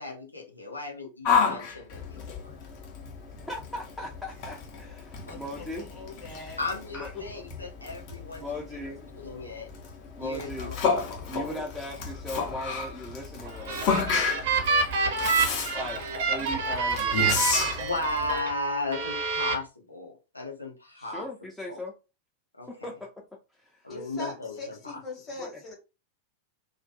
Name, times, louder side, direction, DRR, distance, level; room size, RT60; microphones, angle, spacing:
voice 1, 0.0-2.2 2.4-2.6 5.3-5.4 6.6-8.4 8.7-8.9 9.2-9.7 10.2-10.8 14.6-14.7 17.8-21.2 21.7-21.8 22.5-22.7 23.8-25.0, left 2 dB, 85° left, 0.7 m, -35 dB
Yell, 1.2-18.4, left 5 dB, 45° left, 0.7 m, -31 dB
voice 2, 3.4-5.9 6.9-7.1 8.4-9.1 10.2-10.7 11.3-14.3 14.7-14.8 15.7-17.5 21.0-22.0 22.7-23.1 23.5-23.9 25.4-25.6, left 1 dB, 5° left, 0.4 m, -39 dB
voice 3, 5.3-6.6 6.9-7.2 23.9-25.7, left 3 dB, 25° left, 1.0 m, -41 dB
sound 1, 13.4-18.5 18.9-19.5, right 4 dB, 50° right, 0.6 m, -27 dB
2.4 x 2.1 x 2.7 m
figure-of-eight pair, 90°, 0 cm